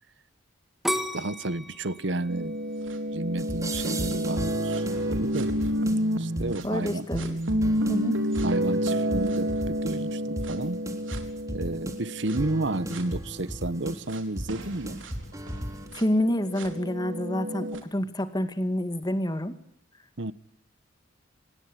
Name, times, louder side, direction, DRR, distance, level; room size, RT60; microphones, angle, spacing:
sound 1, 0.8-3.8 4.3-4.8, equal, ahead, 2.1 m, -33 dB
voice 1, 1.1-2.6 3.1-5.5 6.2-7.1 8.4-10.8 11.5-15.0 20.2-20.3, right 2 dB, 65° right, 1.2 m, -31 dB
sound 2, 2.3-6.6 7.1-13.1 14.1-14.2 14.5-17.8, equal, 85° right, 4.2 m, -29 dB
sound 3, 3.4-15.9, equal, 15° right, 3.5 m, -36 dB
voice 2, 6.6-7.4 7.9-8.2 16.0-19.6, left 1 dB, 20° left, 2.0 m, -28 dB
26.5 x 21.0 x 10.0 m
head